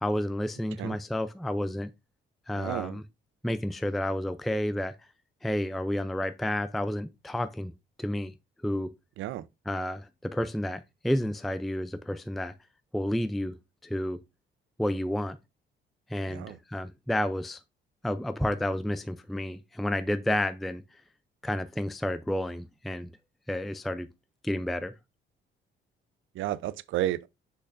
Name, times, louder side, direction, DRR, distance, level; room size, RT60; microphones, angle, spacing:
voice 1, 0.0-1.9 2.5-3.0 3.4-5.0 5.4-7.7 8.0-8.3 8.6-8.9 9.7-12.5 12.9-14.2 14.8-15.4 16.1-17.6 18.0-21.0 21.4-23.1 23.5-24.1 24.4-25.0, left 1 dB, ahead, 0.4 m, -30 dB
voice 2, 2.5-3.0 9.2-9.4 16.3-16.6 26.4-27.3, right 14 dB, 80° right, 0.5 m, -32 dB
6.7 x 5.6 x 2.5 m
cardioid pair, 90°, 20 cm